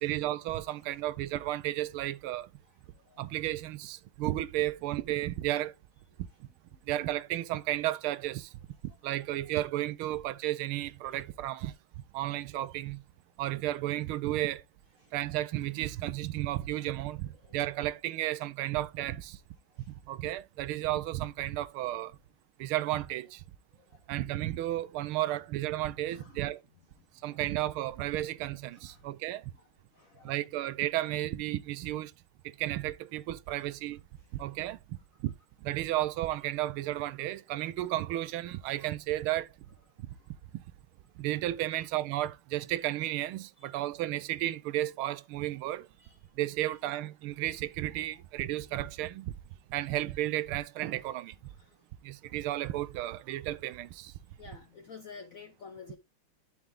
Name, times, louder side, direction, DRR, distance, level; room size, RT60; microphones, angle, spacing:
voice 1, 0.0-2.5 3.2-5.7 6.9-8.5 9.0-11.7 12.1-13.0 13.4-14.6 15.1-19.4 20.1-22.1 22.6-23.4 24.1-26.6 27.2-29.4 30.2-32.1 32.4-34.0 34.3-35.0 35.2-35.3 35.6-39.5 41.2-45.9 46.4-49.3 49.7-51.3 52.0-54.1, right 14 dB, 80° right, 1.5 m, -33 dB
voice 2, 26.1-26.5 27.3-27.4 28.9-29.0 29.9-30.4 34.5-34.6 41.7-41.8 43.6-43.7 46.0-46.2 46.6-46.7 51.6-51.7 54.4-56.0, left 5 dB, 70° left, 0.8 m, -50 dB
11.0 x 4.6 x 3.7 m
omnidirectional pair, 2.4 m